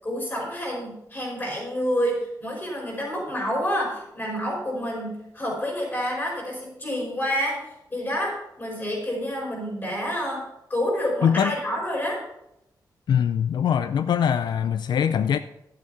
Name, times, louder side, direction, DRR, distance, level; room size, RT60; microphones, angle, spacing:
voice 1, 0.0-10.4 10.7-12.2, equal, 25° left, -3 dB, 5.2 m, -28 dB
voice 2, 11.2-11.6 13.1-15.4, left 8 dB, 90° left, 12 dB, 0.4 m, -22 dB
11.5 x 8.0 x 5.7 m, 0.83 s
wide cardioid pair, 150°, 7 cm